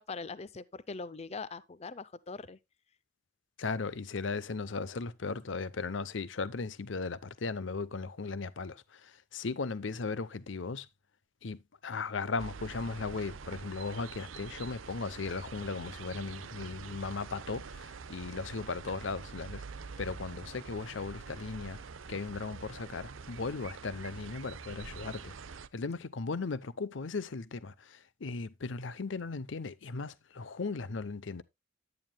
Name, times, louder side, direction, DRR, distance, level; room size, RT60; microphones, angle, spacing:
voice 1, 0.0-2.6, left 4 dB, 35° left, 0.5 m, -42 dB
voice 2, 3.6-10.9 11.4-19.6 20.0-21.8 22.1-25.3 25.7-31.4, left 4 dB, 70° left, 0.7 m, -37 dB
sound 1, 12.4-25.7, right 5 dB, 90° right, 0.7 m, -46 dB
10.5 x 9.5 x 2.2 m
head